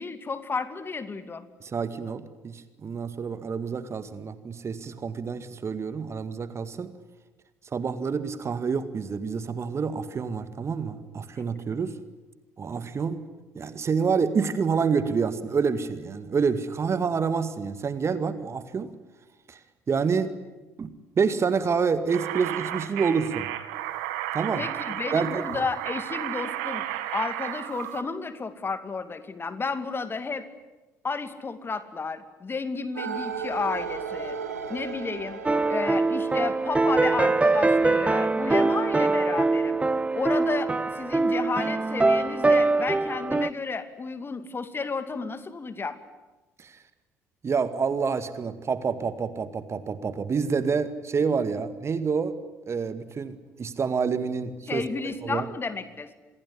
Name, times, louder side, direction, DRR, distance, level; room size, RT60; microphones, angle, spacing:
voice 1, 0.0-1.5 24.6-26.9 27.1-30.4 31.0-34.4 34.7-35.4 35.7-39.8 40.1-46.0 54.7-56.2, left 4 dB, 30° left, 11 dB, 2.5 m, -32 dB
voice 2, 1.6-6.9 7.7-11.9 12.6-13.2 13.6-18.9 19.5-19.6 19.9-20.3 20.8-23.5 24.3-24.6 25.1-25.5 46.6-46.8 47.4-52.3 52.7-54.8 55.2-55.5, right 5 dB, 35° right, 12 dB, 2.0 m, -28 dB
sound 1, 22.1-28.0, right 13 dB, 70° right, 1.9 m, -33 dB
sound 2, 33.0-38.1, right 6 dB, 85° right, 2.5 m, -36 dB
sound 3, 35.4-43.5, right 3 dB, 15° right, 1.1 m, -23 dB
27.0 x 22.0 x 10.0 m, 1.1 s
figure-of-eight pair, 50°, 8 cm